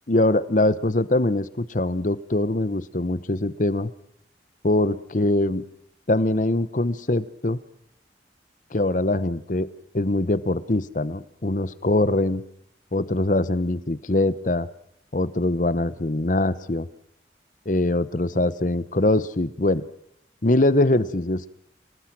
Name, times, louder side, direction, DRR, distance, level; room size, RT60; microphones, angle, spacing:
voice 1, 0.1-3.9 4.6-5.6 6.1-7.6 8.7-9.7 9.9-12.4 12.9-14.7 15.1-16.9 17.7-19.8 20.4-21.5, left 2 dB, 45° left, 15 dB, 1.0 m, -23 dB
29.5 x 19.0 x 6.1 m, 0.75 s
head